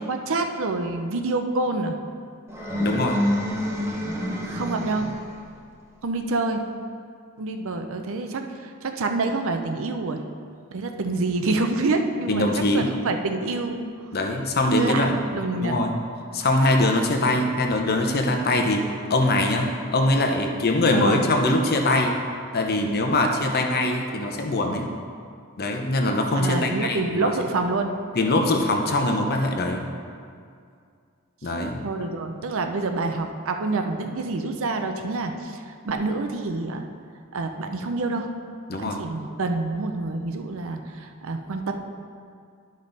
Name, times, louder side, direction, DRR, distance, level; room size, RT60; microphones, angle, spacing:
voice 1, 0.0-2.0 4.4-5.1 6.0-6.6 7.4-10.2 10.7-12.5 12.7-13.9 14.8-15.8 20.9-21.2 26.4-27.9 31.8-36.9 37.3-38.3 38.8-41.7, right 3 dB, 65° right, 5 dB, 0.6 m, -27 dB
sound 1, 2.5-5.4, left 1 dB, 10° right, 0.9 m, -27 dB
voice 2, 2.8-3.2 12.3-12.9 14.1-15.2 15.6-15.9 16.3-18.8 19.1-22.1 22.5-24.9 25.6-27.3 28.1-29.9 31.4-31.8 38.7-39.0, left 2 dB, 45° left, 3 dB, 0.9 m, -22 dB
11.5 x 5.3 x 4.0 m, 2.3 s
head